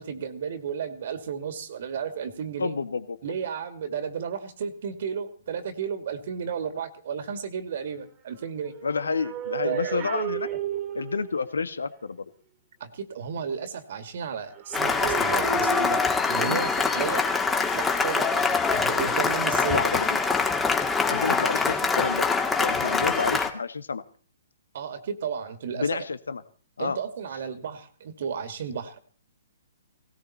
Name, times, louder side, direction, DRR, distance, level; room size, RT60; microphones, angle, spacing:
voice 1, 0.0-2.8 3.2-8.7 9.6-10.1 12.8-17.3 17.7-19.8 24.7-26.0 26.8-29.0, right 7 dB, 55° right, 11 dB, 2.2 m, -33 dB
voice 2, 2.6-3.0 8.8-10.5 10.9-12.2 16.4-16.6 19.7-20.2 21.0-22.3 22.6-24.0 25.7-26.4 26.8-27.0, left 4 dB, 75° left, 13 dB, 1.6 m, -29 dB
sound 1, 8.7-11.4 14.5-16.5 17.3-17.5, right 11 dB, 30° right, 2.1 m, -33 dB
Cheering / Applause, 14.7-23.5, left 4 dB, 10° left, 2.1 m, -24 dB
18.5 x 18.0 x 4.3 m, 0.42 s
figure-of-eight pair, 120°, 0 cm